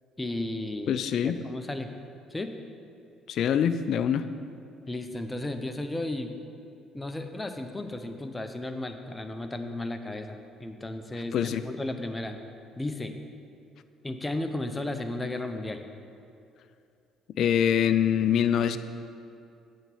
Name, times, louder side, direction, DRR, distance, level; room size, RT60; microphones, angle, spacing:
voice 1, 0.2-1.9 2.3-2.5 4.9-6.4 6.9-12.4 12.8-13.2 14.0-15.8, left 2 dB, 15° left, 7 dB, 0.7 m, -34 dB
voice 2, 0.9-1.4 3.3-4.2 11.1-11.6 17.4-18.8, left 9 dB, 60° left, 12 dB, 0.3 m, -24 dB
8.0 x 4.1 x 6.9 m, 2.6 s
hypercardioid pair, 60°, 0 cm